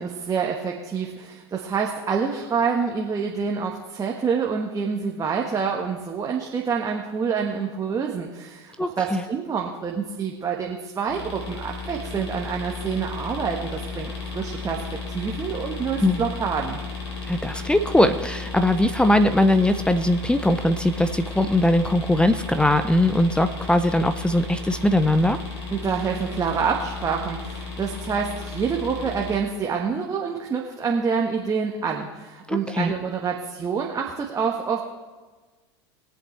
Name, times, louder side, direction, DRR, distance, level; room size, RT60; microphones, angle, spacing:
voice 1, 0.0-16.8 25.7-34.8, right 6 dB, 25° right, 0 dB, 1.4 m, -27 dB
voice 2, 8.8-9.2 16.0-16.2 17.3-25.4 32.5-32.9, left 1 dB, 5° left, 11 dB, 0.6 m, -20 dB
sound 1, 11.1-29.4, left 4 dB, 75° left, 3.6 m, -34 dB
22.0 x 7.9 x 3.3 m, 1.3 s
hypercardioid pair, 80°, 14 cm